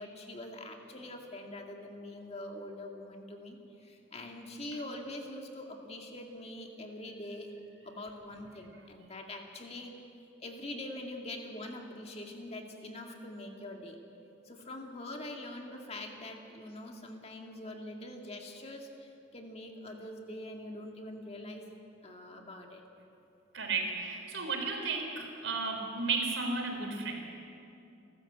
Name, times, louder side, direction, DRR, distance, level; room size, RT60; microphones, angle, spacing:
voice 1, 0.0-10.1 10.4-14.0 14.4-21.7 22.0-22.8, left 1 dB, 35° left, 2 dB, 2.2 m, -44 dB
voice 2, 23.5-27.1, right 4 dB, 80° right, 3 dB, 3.8 m, -33 dB
29.5 x 13.0 x 8.0 m, 2.7 s
head